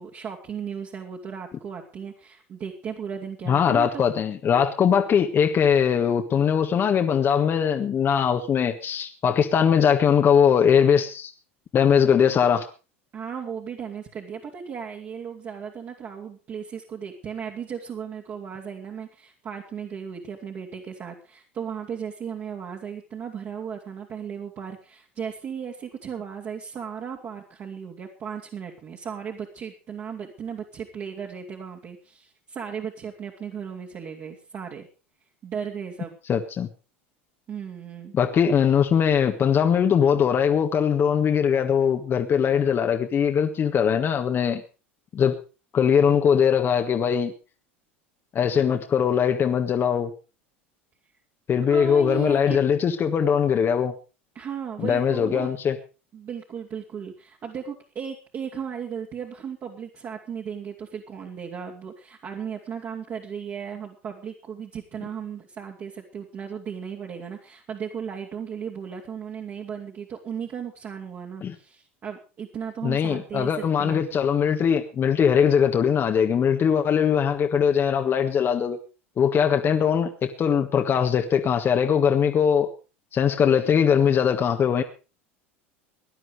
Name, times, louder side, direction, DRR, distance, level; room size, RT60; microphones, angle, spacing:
voice 1, 0.0-4.0 13.1-34.9 35.4-36.2 37.5-38.1 51.7-52.6 54.3-55.5 56.1-74.0, right 7 dB, 40° right, -1 dB, 2.9 m, -36 dB
voice 2, 3.5-11.3 11.7-12.6 36.3-36.7 38.1-44.6 45.1-45.4 45.7-47.3 48.3-50.1 51.5-53.9 54.8-55.8 71.4-71.5 72.8-78.8 79.2-82.7 83.1-84.8, left 7 dB, 35° left, 5 dB, 1.5 m, -21 dB
18.0 x 11.0 x 4.9 m, 0.34 s
hypercardioid pair, 85°, 7 cm